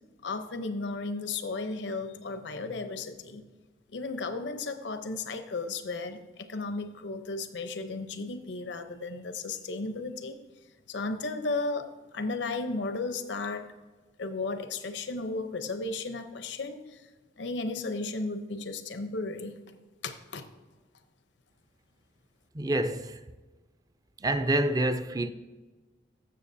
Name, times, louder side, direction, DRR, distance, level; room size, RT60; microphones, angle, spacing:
voice 1, 0.2-3.5 3.9-10.4 10.9-13.7 14.2-17.0 17.4-19.6 20.0-20.5, left 3 dB, 85° left, 0.8 m, -34 dB
voice 2, 22.5-23.2 24.2-25.3, right 1 dB, 20° right, 0.4 m, -27 dB
14.5 x 6.7 x 2.7 m
head